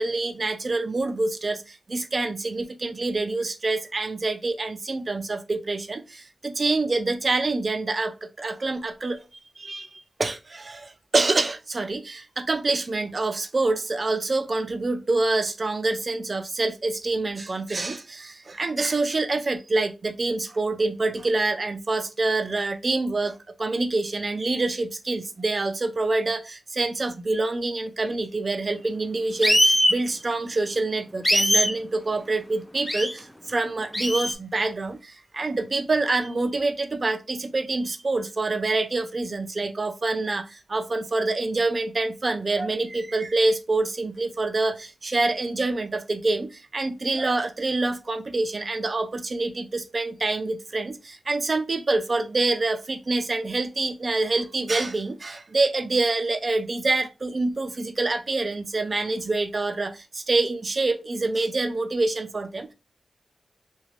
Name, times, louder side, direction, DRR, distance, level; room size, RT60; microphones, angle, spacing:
voice 1, 0.0-9.2 9.6-62.7, right 3 dB, 45° right, 0.5 m, -26 dB
sound 1, 29.4-30.0 31.2-31.7 32.9-33.1 33.9-34.3, equal, 5° left, 0.4 m, -20 dB
2.9 x 2.6 x 3.1 m
cardioid pair, 70°, 0 cm